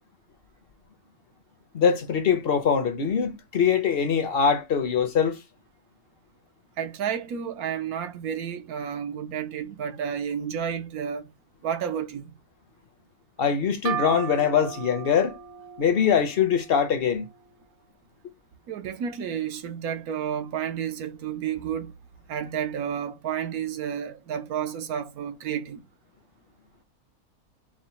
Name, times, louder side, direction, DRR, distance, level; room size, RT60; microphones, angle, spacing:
voice 1, 1.7-5.4 13.4-15.4 15.8-17.3, left 7 dB, 55° left, 0.7 m, -23 dB
voice 2, 6.8-11.3 11.6-12.2 18.7-21.9 22.3-25.8, right 8 dB, 90° right, 1.2 m, -31 dB
sound 1, 13.8-17.4, right 9 dB, 65° right, 1.0 m, -36 dB
4.9 x 2.1 x 4.2 m
omnidirectional pair, 1.5 m